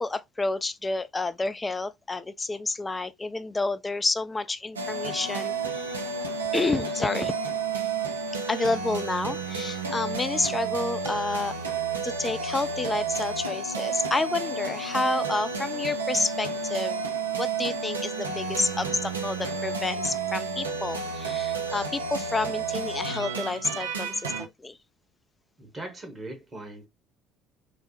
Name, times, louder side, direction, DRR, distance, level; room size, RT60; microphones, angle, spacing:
voice 1, 0.0-6.0 6.5-7.3 8.5-11.6 12.0-17.0 17.4-24.8, left 3 dB, 20° left, 0.3 m, -29 dB
sound 1, 4.8-24.5, right 4 dB, 80° right, 0.4 m, -31 dB
voice 2, 25.6-26.9, right 2 dB, 25° right, 1.2 m, -40 dB
3.3 x 2.0 x 2.9 m
figure-of-eight pair, 55°, 0 cm